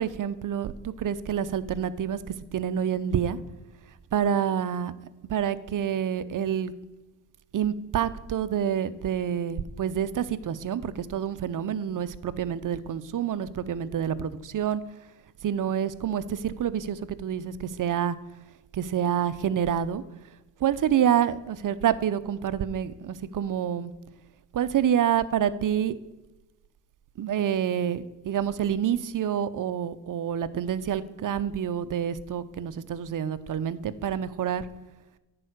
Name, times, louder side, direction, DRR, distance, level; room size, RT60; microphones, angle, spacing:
voice 1, 0.0-3.4 4.1-4.9 5.3-6.7 7.5-14.8 15.4-18.2 18.7-20.0 20.6-23.9 24.5-26.0 27.2-34.6, right 9 dB, 40° right, 14 dB, 0.6 m, -27 dB
9.8 x 4.7 x 6.6 m, 1.1 s
supercardioid pair, 70°, 48 cm